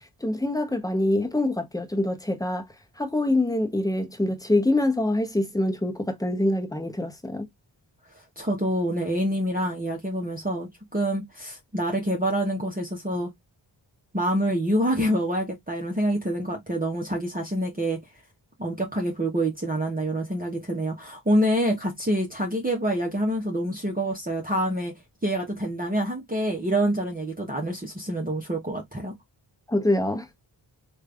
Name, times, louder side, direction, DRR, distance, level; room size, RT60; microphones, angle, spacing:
voice 1, 0.2-2.6 3.0-7.5 29.7-30.3, left 1 dB, 10° left, 1.0 m, -25 dB
voice 2, 8.4-13.3 14.1-18.0 18.6-24.9 25.2-29.1, right 1 dB, 20° right, 1.1 m, -26 dB
3.2 x 2.6 x 3.3 m
cardioid pair, 45°, 47 cm